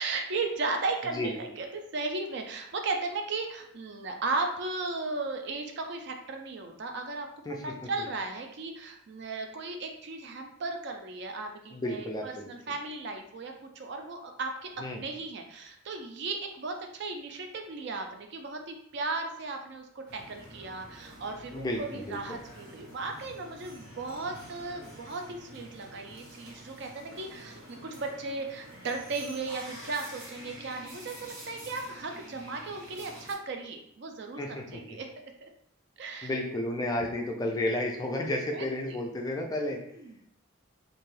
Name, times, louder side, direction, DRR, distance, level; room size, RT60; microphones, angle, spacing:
voice 1, 0.0-7.3 7.6-35.5 36.0-36.3 38.5-38.7 39.9-40.2, right 3 dB, 55° right, 4 dB, 0.4 m, -36 dB
voice 2, 11.7-12.5 14.8-15.0 21.5-22.2 34.4-35.0 36.2-39.8, left 1 dB, 20° left, 1 dB, 0.3 m, -32 dB
sound 1, 20.1-33.3, right 1 dB, 70° right, 0.8 m, -48 dB
2.5 x 2.2 x 3.1 m, 0.71 s
head